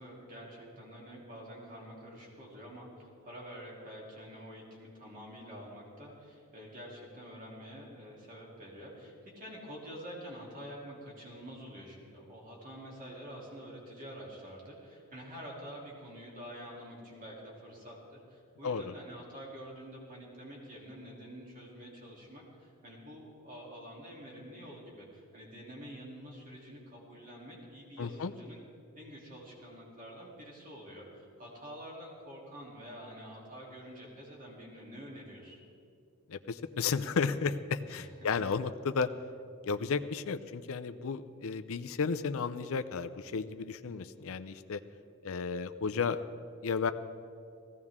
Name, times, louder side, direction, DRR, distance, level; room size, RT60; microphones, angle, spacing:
voice 1, 0.0-18.0 18.3-28.6 28.9-35.6 37.9-38.1, equal, 40° right, -3 dB, 3.1 m, -47 dB
voice 2, 18.6-18.9 28.0-28.3 36.3-39.1 39.6-44.8 45.2-46.2 46.6-46.9, left 5 dB, 65° left, 11 dB, 0.5 m, -33 dB
19.0 x 16.0 x 3.6 m, 2.6 s
head